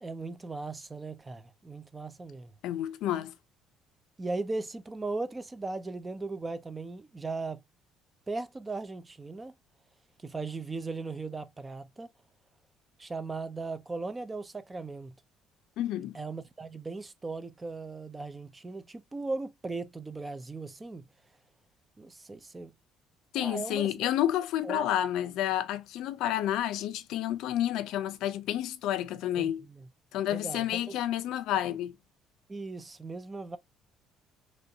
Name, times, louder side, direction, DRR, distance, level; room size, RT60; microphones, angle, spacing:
voice 1, 0.0-2.5 4.2-7.6 8.3-9.5 10.2-12.1 13.0-15.1 16.1-21.1 22.0-22.7 23.4-23.9 24.6-24.8 29.4-29.9 30.3-31.0 32.5-33.6, right 3 dB, 15° right, 0.4 m, -38 dB
voice 2, 2.6-3.3 15.8-16.2 23.3-29.6 30.1-31.9, left 12 dB, 70° left, 0.4 m, -30 dB
3.0 x 2.6 x 2.7 m
cardioid pair, 135°, 0 cm